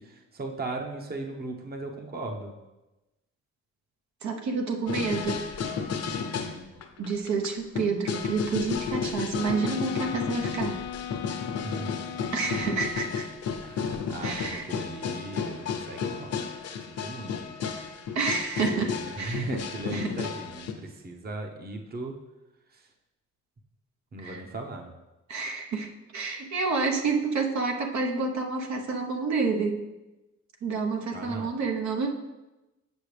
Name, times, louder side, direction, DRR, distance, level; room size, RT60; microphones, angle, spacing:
voice 1, 0.0-2.6 6.4-6.7 11.6-12.3 13.6-16.4 16.9-17.5 18.7-22.2 24.1-24.9 31.1-31.6, right 2 dB, 30° right, 3 dB, 0.9 m, -37 dB
voice 2, 4.2-5.4 7.0-10.8 12.3-13.3 14.2-14.7 18.1-19.5 19.9-20.1 24.2-24.4 25.3-25.9 26.1-29.8 30.6-32.1, right 4 dB, 65° right, 2 dB, 1.0 m, -29 dB
sound 1, 4.9-6.6 6.8-7.5 7.7-20.7, left 6 dB, 55° left, 0.9 m, -33 dB
sound 2, 9.3-13.2, left 10 dB, 80° left, 0.5 m, -38 dB
8.2 x 6.1 x 3.4 m, 1.0 s
cardioid pair, 90°, 30 cm